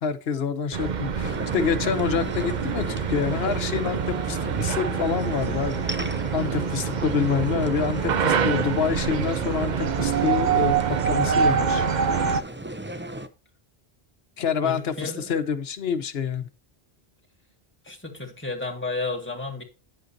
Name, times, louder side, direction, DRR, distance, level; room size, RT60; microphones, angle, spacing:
voice 1, 0.0-5.8 6.3-11.9 14.4-16.5, left 6 dB, 75° left, 12 dB, 1.1 m, -27 dB
sound 1, 0.7-12.4, right 7 dB, 50° right, 0.7 m, -26 dB
sound 2, 1.2-13.3, right 1 dB, 15° right, 0.6 m, -35 dB
sound 3, 5.0-12.4, left 4 dB, 35° left, 1.0 m, -47 dB
voice 2, 14.6-15.4 17.9-19.6, left 3 dB, 10° left, 0 dB, 2.0 m, -32 dB
9.5 x 7.9 x 2.7 m, 0.33 s
omnidirectional pair, 1.0 m